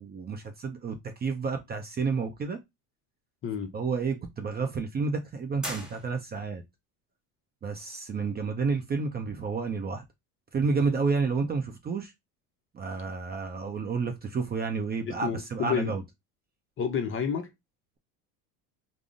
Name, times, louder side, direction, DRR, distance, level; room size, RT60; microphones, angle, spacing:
voice 1, 0.0-2.6 3.7-6.6 7.6-10.0 10.5-12.1 12.7-16.0, right 4 dB, 25° right, 0.4 m, -30 dB
voice 2, 3.4-3.7 15.1-16.0 16.8-17.5, left 7 dB, 30° left, 0.5 m, -30 dB
sound 1, 5.6-6.6, equal, ahead, 1.1 m, -39 dB
3.5 x 2.0 x 2.4 m
supercardioid pair, 90°, 43 cm